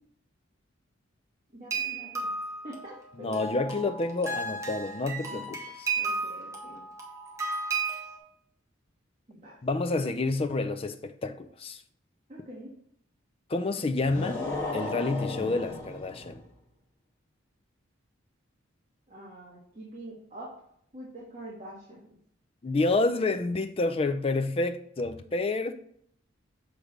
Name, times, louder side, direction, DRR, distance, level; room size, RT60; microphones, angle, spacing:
voice 1, 1.5-2.3 2.6-3.8 5.3-5.5 6.0-6.9 9.3-9.5 12.3-12.7 19.1-20.5 20.9-22.2, right 1 dB, 35° right, 1.4 m, -45 dB
sound 1, 1.7-8.2, right 4 dB, 15° right, 1.0 m, -34 dB
voice 2, 3.2-5.9 9.6-11.8 13.5-14.4 14.7-16.4 22.6-25.7, left 3 dB, 30° left, 0.4 m, -29 dB
sound 2, 14.0-16.4, left 2 dB, 10° left, 1.6 m, -35 dB
6.5 x 3.3 x 4.9 m
head